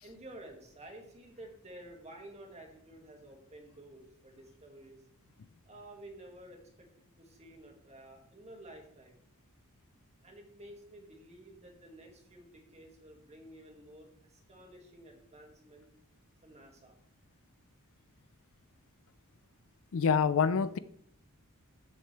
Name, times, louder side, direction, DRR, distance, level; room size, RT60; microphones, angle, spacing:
voice 1, 0.0-5.0 5.7-6.9 7.2-9.2 10.2-15.9 16.4-17.0, right 1 dB, 30° right, 2.2 m, -52 dB
voice 2, 19.9-20.8, left 6 dB, 65° left, 0.4 m, -26 dB
14.5 x 6.5 x 3.4 m
head